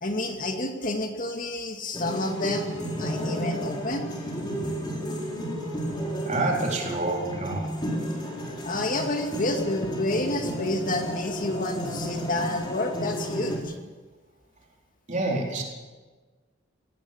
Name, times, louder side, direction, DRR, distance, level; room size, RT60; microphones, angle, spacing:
voice 1, 0.0-2.7 3.0-4.1 8.6-13.7, left 2 dB, 45° left, 3 dB, 2.4 m, -29 dB
sound 1, 1.9-13.6, equal, 25° left, 4.3 m, -32 dB
voice 2, 6.3-7.7 15.1-15.6, right 2 dB, 40° right, -1 dB, 4.2 m, -27 dB
18.0 x 17.0 x 8.7 m, 1.4 s
head